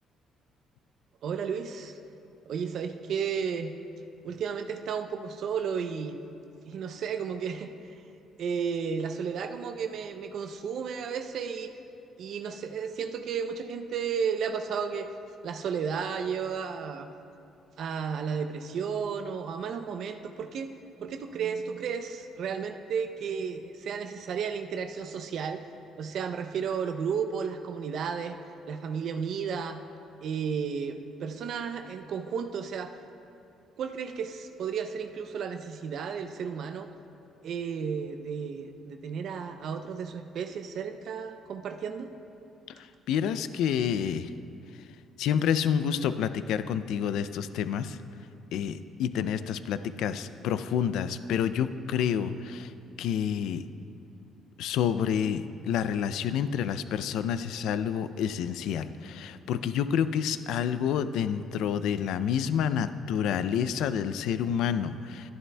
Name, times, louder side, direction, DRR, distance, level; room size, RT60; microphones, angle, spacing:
voice 1, 1.2-2.0 2.5-3.7 4.2-6.2 6.7-8.0 8.4-11.7 12.2-15.1 15.4-17.1 17.8-20.7 21.0-25.6 26.0-28.4 28.7-29.8 30.2-32.9 33.8-36.9 37.4-42.1, right 6 dB, 60° right, 7 dB, 0.5 m, -33 dB
voice 2, 43.1-44.3 45.2-48.0 48.5-52.7 53.0-53.6 54.6-65.3, left 8 dB, 80° left, 13 dB, 0.3 m, -28 dB
12.0 x 11.0 x 2.2 m, 2.6 s
cardioid pair, 115°, 0 cm